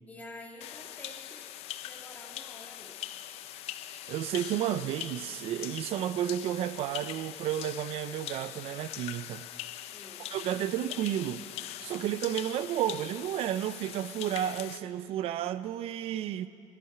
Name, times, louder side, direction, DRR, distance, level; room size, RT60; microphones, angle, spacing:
voice 1, 0.1-1.5 1.8-3.2 9.9-10.3, left 2 dB, 15° left, 1.9 m, -49 dB
sound 1, 0.6-14.8, left 13 dB, 75° left, 0.5 m, -42 dB
voice 2, 4.1-9.4 10.3-11.5 11.8-16.5, right 11 dB, 65° right, 0.6 m, -32 dB
15.5 x 11.0 x 5.9 m
cardioid pair, 130°, 11 cm